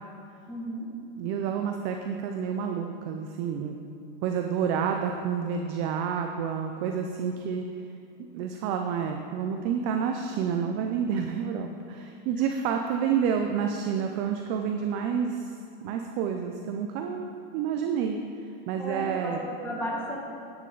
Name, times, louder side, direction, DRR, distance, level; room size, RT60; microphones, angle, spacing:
voice 1, 0.5-0.9 18.8-20.2, equal, 5° left, -3 dB, 1.5 m, -34 dB
voice 2, 1.2-3.8 4.2-7.7 8.3-15.6 15.8-19.4, right 7 dB, 25° right, 4 dB, 0.4 m, -29 dB
12.0 x 10.0 x 3.9 m, 2.6 s
supercardioid pair, 160°, 31 cm